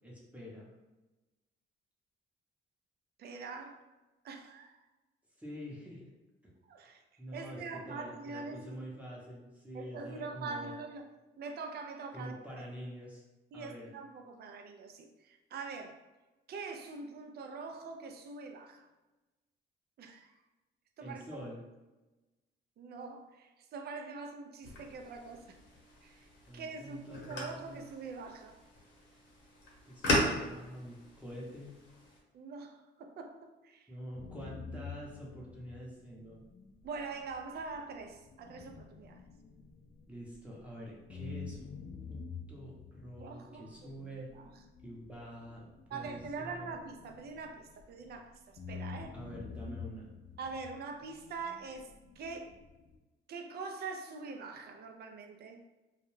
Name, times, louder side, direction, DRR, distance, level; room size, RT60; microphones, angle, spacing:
voice 1, 0.0-0.7 5.4-6.1 6.4-6.5 6.8-6.9 7.2-10.7 12.1-13.2 13.5-13.9 21.0-21.6 26.4-27.8 29.9-31.8 33.9-36.4 40.1-42.2 42.5-44.3 44.8-46.7 49.1-50.1, equal, 5° right, -5 dB, 0.7 m, -46 dB
voice 2, 3.2-3.8 4.2-4.8 6.7-8.8 9.7-11.1 11.4-12.6 13.5-16.0 16.5-18.9 20.0-20.3 21.0-21.2 22.8-25.6 26.0-26.3 26.5-28.6 32.3-33.9 36.8-39.2 43.2-44.5 45.9-49.2 50.4-52.6 53.3-55.6, right 4 dB, 55° right, 5 dB, 0.4 m, -44 dB
sound 1, 24.6-32.2, left 1 dB, 70° left, 0.9 m, -38 dB
sound 2, 34.1-40.7 41.1-48.2 48.6-53.0, left 5 dB, 50° left, 0.4 m, -48 dB
2.3 x 2.1 x 3.1 m, 1.1 s
cardioid pair, 90°, 20 cm